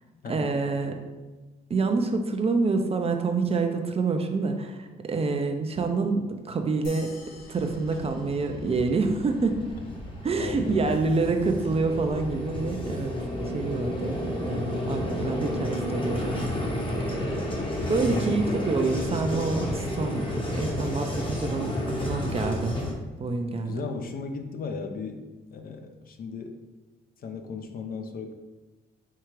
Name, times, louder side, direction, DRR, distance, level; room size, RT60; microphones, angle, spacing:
voice 1, 0.3-1.0 1.7-7.1 7.5-9.6 10.2-13.1 13.5-16.6 17.3-17.4 17.9-20.3 20.6-22.8 23.2-23.7, right 3 dB, 30° right, 5 dB, 0.4 m, -27 dB
sound 1, 6.8-9.6, left 3 dB, 85° left, 0.9 m, -51 dB
Vehicle, 7.3-22.9, left 1 dB, 25° left, 0.8 m, -31 dB
voice 2, 10.4-11.2 17.1-18.7 23.6-25.2 25.5-26.6 27.2-28.3, left 4 dB, 50° left, 5 dB, 0.5 m, -36 dB
4.5 x 2.4 x 3.1 m, 1.2 s
cardioid pair, 90°, 20 cm